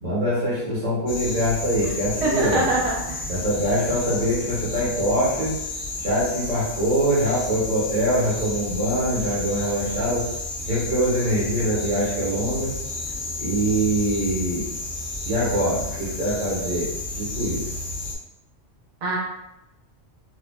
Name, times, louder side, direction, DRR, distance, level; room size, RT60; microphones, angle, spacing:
voice 1, 0.0-2.7 3.3-5.5 6.0-10.3 10.7-12.7 13.4-14.7 15.2-17.6, equal, 80° right, -9 dB, 2.0 m, -24 dB
sound 1, 1.1-18.2, left 2 dB, 80° left, 1.1 m, -32 dB
voice 2, 2.2-3.2 19.0-19.2, right 2 dB, 35° right, -4 dB, 0.6 m, -24 dB
4.1 x 2.0 x 2.2 m, 0.87 s
omnidirectional pair, 1.3 m